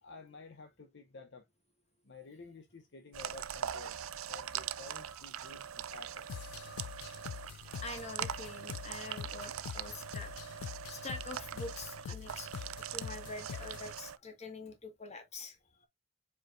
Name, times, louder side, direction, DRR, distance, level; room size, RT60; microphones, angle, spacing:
voice 1, 0.0-1.5 2.0-4.0 4.2-6.3, left 3 dB, 50° left, 0.7 m, -52 dB
sound 1, 3.1-14.2, right 9 dB, 70° right, 0.5 m, -42 dB
sound 2, 3.5-10.3, right 2 dB, ahead, 2.9 m, -61 dB
sound 3, 6.3-14.0, left 8 dB, 90° left, 0.3 m, -45 dB
voice 2, 7.4-15.9, left 2 dB, 30° left, 1.7 m, -46 dB
7.7 x 4.8 x 2.5 m
head